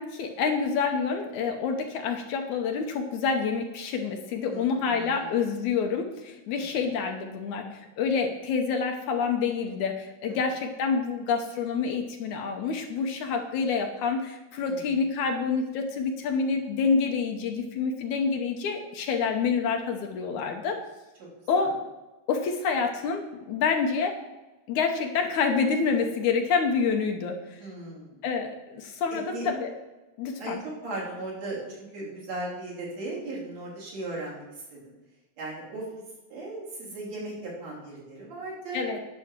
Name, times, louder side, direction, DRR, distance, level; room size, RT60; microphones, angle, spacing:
voice 1, 0.0-20.8 21.5-21.7 22.3-24.2 24.7-27.6 28.2-29.7 30.2-30.6 38.7-39.0, left 5 dB, 70° left, 4 dB, 2.2 m, -27 dB
voice 2, 4.5-5.3 6.6-6.8 10.3-10.4 14.7-15.0 21.6-21.8 27.6-28.1 29.1-29.5 30.4-30.5 30.8-34.4 34.7-34.8 35.4-35.8 36.3-38.8, right 2 dB, 55° right, -4 dB, 4.2 m, -37 dB
10.5 x 5.6 x 7.3 m, 1.1 s
omnidirectional pair, 3.8 m